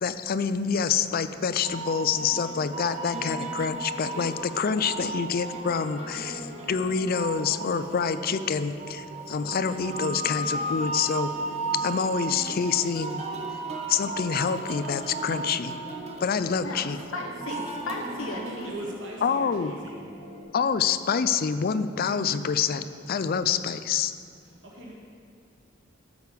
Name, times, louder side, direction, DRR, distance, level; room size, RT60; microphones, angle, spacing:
voice 1, 0.0-11.3 11.8-13.2 13.9-15.8 16.2-17.0 19.2-19.7 20.5-24.1, left 6 dB, 45° left, 12 dB, 0.4 m, -27 dB
sound 1, 1.6-18.7, right 2 dB, 35° right, 1.1 m, -35 dB
sound 2, 4.4-20.4, equal, 5° left, 3.0 m, -46 dB
voice 2, 16.6-18.7, left 2 dB, 80° left, 0 dB, 0.9 m, -36 dB
voice 3, 18.6-20.0 24.4-24.9, right 1 dB, 65° right, -3 dB, 1.8 m, -40 dB
13.0 x 6.6 x 5.2 m, 2.3 s
head